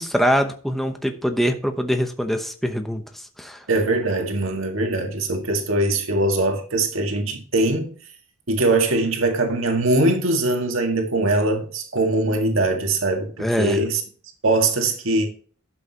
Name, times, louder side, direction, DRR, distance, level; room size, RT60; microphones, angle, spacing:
voice 1, 0.0-3.0 3.4-3.6 13.4-13.8, equal, ahead, 0.9 m, -23 dB
voice 2, 3.7-7.9 8.5-14.0 14.4-15.3, right 2 dB, 80° right, 1.7 m, -21 dB
11.5 x 7.7 x 2.9 m
head